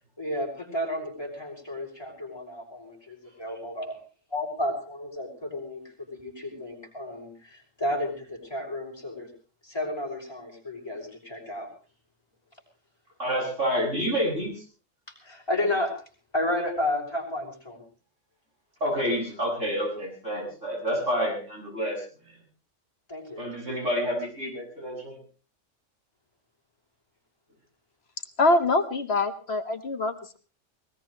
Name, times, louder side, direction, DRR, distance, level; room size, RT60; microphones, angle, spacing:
voice 1, 0.2-3.9 4.3-9.3 9.6-11.7 15.2-15.9 16.3-17.8 23.1-23.7, left 1 dB, 20° left, 0 dB, 6.3 m, -32 dB
voice 2, 13.2-14.6 18.8-22.3 23.4-25.2, equal, 75° right, -1 dB, 8.0 m, -29 dB
voice 3, 28.4-30.4, left 2 dB, 55° left, 8 dB, 1.7 m, -24 dB
20.5 x 19.5 x 3.3 m, 0.38 s
omnidirectional pair, 1.3 m